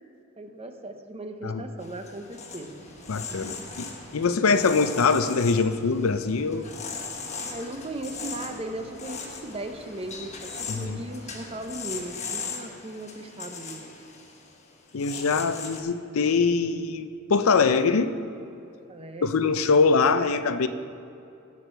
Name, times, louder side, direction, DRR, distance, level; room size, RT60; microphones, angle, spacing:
voice 1, 0.4-2.7 3.3-3.7 7.4-13.9 18.9-19.4, right 1 dB, 30° right, 6 dB, 0.8 m, -37 dB
sound 1, 1.8-15.8, left 5 dB, 35° left, 1.2 m, -39 dB
sound 2, 2.0-12.1, equal, 70° right, 2.9 m, -50 dB
voice 2, 3.1-3.9 4.1-6.7 10.7-11.0 14.9-18.2 19.2-20.7, left 4 dB, 75° left, 11 dB, 0.5 m, -23 dB
16.5 x 6.4 x 4.5 m, 2.7 s
head